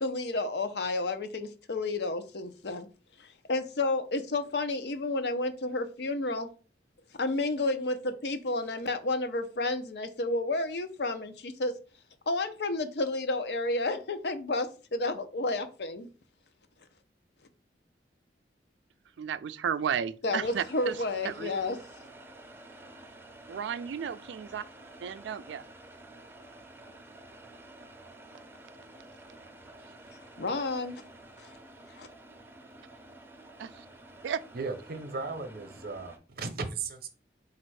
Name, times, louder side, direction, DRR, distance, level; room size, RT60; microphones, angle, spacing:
voice 1, 0.0-2.9 3.2-6.5 7.2-11.7 12.3-16.1 20.2-21.8 30.4-31.0 31.4-31.5 32.0-32.1, left 2 dB, 65° left, 0.6 m, -31 dB
voice 2, 19.2-21.0 21.2-21.5 23.5-24.6 25.0-25.6 33.6-33.9 34.2-34.4, right 7 dB, 85° right, 0.3 m, -33 dB
sound 1, 20.4-36.2, right 2 dB, 15° right, 0.6 m, -51 dB
voice 3, 34.5-37.1, right 4 dB, 55° right, 0.7 m, -36 dB
4.2 x 2.4 x 4.6 m
head